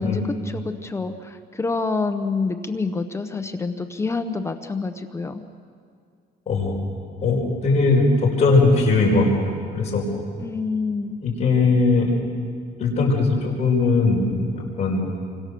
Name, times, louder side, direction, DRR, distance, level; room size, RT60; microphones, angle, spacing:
voice 1, 0.0-5.4 10.4-11.2, left 4 dB, 15° left, 7 dB, 0.9 m, -27 dB
voice 2, 6.5-6.8 7.2-10.0 11.2-12.1 12.8-15.1, left 3 dB, 40° left, -2 dB, 5.0 m, -20 dB
28.5 x 25.0 x 6.9 m, 2.2 s
cardioid pair, 170°, 18 cm